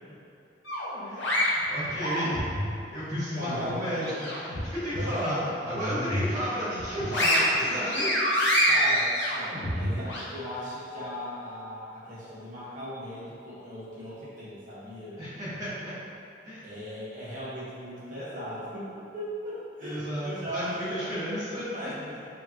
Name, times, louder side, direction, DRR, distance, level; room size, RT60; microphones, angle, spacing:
sound 1, 0.6-2.7 3.1-4.6 4.9-5.1 5.6-6.4 6.8-10.2, equal, 70° left, 1.0 m, -27 dB
voice 1, 1.0-2.4 2.9-8.1 15.2-15.9 16.4-16.7 19.8-21.7, equal, 20° right, -14 dB, 1.3 m, -33 dB
voice 2, 3.3-4.2 4.9-5.5 8.7-15.2 16.6-21.1 21.7-22.3, equal, 45° right, -8 dB, 1.1 m, -38 dB
4.9 x 2.9 x 2.8 m, 2.7 s
head